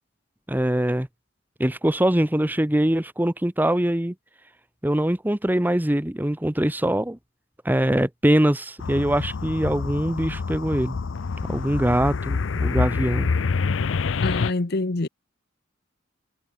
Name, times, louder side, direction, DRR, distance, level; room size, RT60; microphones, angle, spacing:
voice 1, 0.5-1.1 1.6-4.1 4.8-7.2 7.6-11.0 11.5-13.3, right 1 dB, 10° right, 0.9 m, -23 dB
sound 1, 8.8-14.5, left 4 dB, 80° left, 0.5 m, -26 dB
voice 2, 14.2-15.1, left 2 dB, 55° left, 1.0 m, -25 dB
head